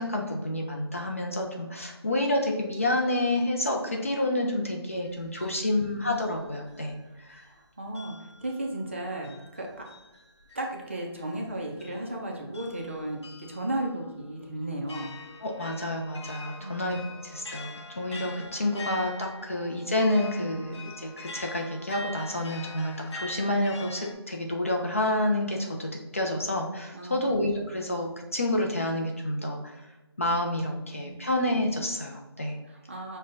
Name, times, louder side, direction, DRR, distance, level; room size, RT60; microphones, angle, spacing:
voice 1, 0.0-7.4 15.4-17.7 17.9-29.7 30.2-32.6, left 1 dB, 30° left, 1 dB, 0.4 m, -29 dB
sound 1, 5.0-7.6 7.9-24.1, left 2 dB, 80° left, 0.6 m, -45 dB
voice 2, 7.5-9.8 10.5-15.4 16.6-16.8 26.9-27.3 30.8-31.3 32.6-33.2, right 1 dB, 30° right, 0 dB, 0.5 m, -35 dB
6.0 x 2.2 x 2.4 m, 1.1 s
figure-of-eight pair, 170°, 14 cm